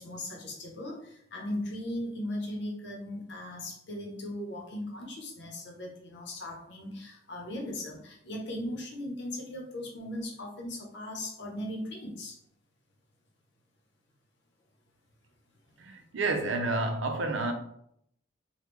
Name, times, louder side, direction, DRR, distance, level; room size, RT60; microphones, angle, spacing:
voice 1, 0.0-12.4, left 1 dB, 65° left, 0.8 m, -38 dB
voice 2, 15.8-17.5, right 2 dB, 80° right, 0.5 m, -30 dB
3.4 x 2.2 x 3.2 m
head